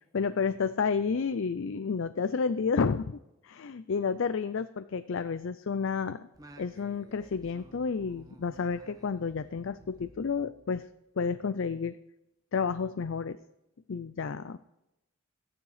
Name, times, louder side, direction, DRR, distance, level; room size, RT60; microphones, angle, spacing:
voice 1, 0.1-6.2 6.6-10.9 11.2-12.0 12.5-13.4 13.9-14.6, left 5 dB, 60° left, 13 dB, 0.4 m, -31 dB
Singing, 6.3-11.1, right 1 dB, 15° right, 0.8 m, -55 dB
14.0 x 9.7 x 4.9 m, 0.90 s
head